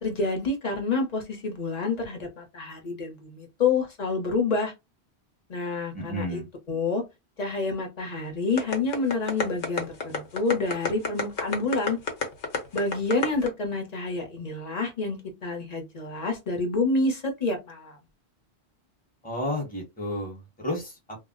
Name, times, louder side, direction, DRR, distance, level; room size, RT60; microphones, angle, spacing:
voice 1, 0.0-4.7 5.5-6.4 6.7-7.0 7.4-12.0 12.7-18.0, left 3 dB, 40° left, 0.9 m, -28 dB
voice 2, 5.9-6.4 19.2-21.2, left 1 dB, 10° left, 0.9 m, -32 dB
sound 1, 8.6-13.5, left 5 dB, 90° left, 1.1 m, -28 dB
2.4 x 2.0 x 3.7 m
omnidirectional pair, 1.1 m